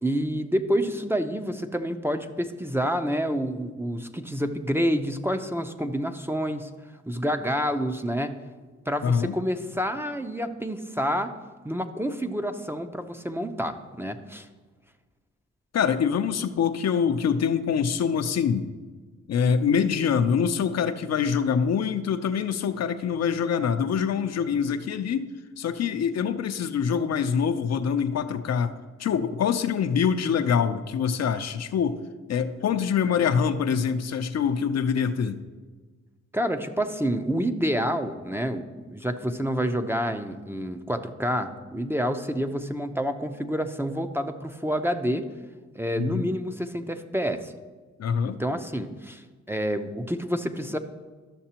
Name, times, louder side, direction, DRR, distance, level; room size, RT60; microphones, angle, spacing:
voice 1, 0.0-6.7 7.1-8.4 8.9-11.3 11.6-14.5 36.3-45.2 45.8-47.5 48.2-50.8, equal, 10° right, 7 dB, 0.6 m, -28 dB
voice 2, 9.0-9.4 15.7-18.7 19.3-28.7 29.0-32.0 32.3-35.4 46.0-46.3 48.0-48.4, left 7 dB, 60° left, 9 dB, 0.5 m, -25 dB
12.5 x 6.5 x 2.9 m, 1.4 s
cardioid pair, 60°, 29 cm